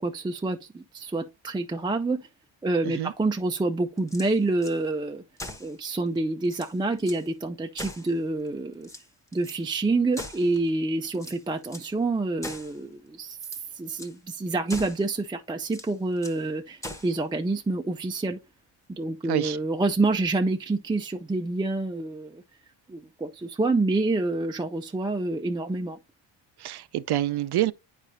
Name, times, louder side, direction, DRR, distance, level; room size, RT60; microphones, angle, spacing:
voice 1, 0.0-2.2 2.6-5.2 5.6-8.9 9.3-13.4 13.7-18.4 18.9-22.4 22.9-26.0, right 2 dB, 10° right, 0.4 m, -27 dB
sound 1, 4.0-4.8 5.4-5.8 6.2-6.3 6.4-7.3 7.8-8.5 8.8-9.6 10.1-10.7 11.1-11.9 12.4-12.8 13.3-13.7 14.0-14.2 14.7-15.1 15.7-16.4 16.8-17.2, left 1 dB, 5° left, 0.9 m, -41 dB
voice 2, 26.6-27.7, right 13 dB, 55° right, 0.6 m, -27 dB
8.8 x 5.0 x 2.6 m
cardioid pair, 90°, 47 cm